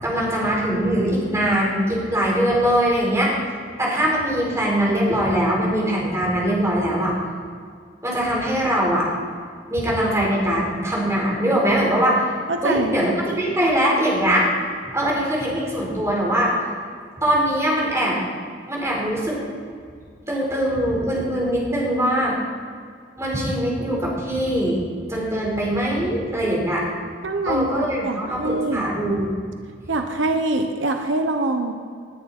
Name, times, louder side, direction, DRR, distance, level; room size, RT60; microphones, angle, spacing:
voice 1, 0.0-3.3 3.8-7.1 8.0-9.1 9.7-12.3 12.6-14.5 14.9-16.5 17.2-18.2 18.7-19.4 20.3-22.4 23.2-24.8 25.1-26.8 27.5-29.4, equal, 15° right, -4 dB, 4.4 m, -22 dB
voice 2, 12.5-13.1 27.2-28.9 29.9-31.7, right 2 dB, 80° right, 5 dB, 1.0 m, -24 dB
20.0 x 10.5 x 4.4 m, 2.1 s
head